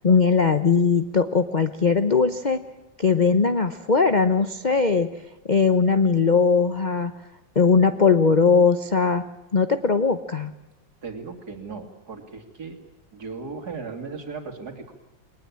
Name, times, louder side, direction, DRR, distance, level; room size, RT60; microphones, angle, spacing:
voice 1, 0.0-2.6 3.0-5.1 5.5-7.1 7.5-9.2 9.5-10.5, left 5 dB, 35° left, 9 dB, 0.7 m, -20 dB
voice 2, 11.0-12.8 13.1-14.9, right 4 dB, 55° right, 5 dB, 3.4 m, -36 dB
22.5 x 19.5 x 8.8 m, 0.97 s
omnidirectional pair, 2.1 m